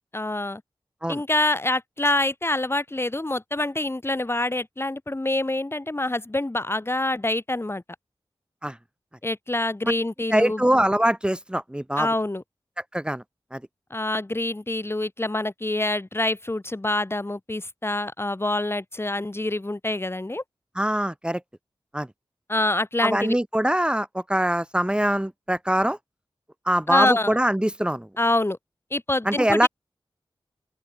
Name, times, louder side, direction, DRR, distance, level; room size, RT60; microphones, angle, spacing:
voice 1, 0.1-0.6 1.1-7.8 9.2-10.6 12.0-12.4 13.9-20.4 22.5-23.4 26.9-27.4 28.2-28.6 28.9-29.7, left 2 dB, 25° left, 3.7 m, -26 dB
voice 2, 10.3-12.1 12.9-13.2 13.5-13.6 20.8-21.4 21.9-22.1 23.0-26.0 26.7-28.1 29.2-29.7, right 1 dB, 10° right, 3.0 m, -23 dB
open air
wide cardioid pair, 80°, 9 cm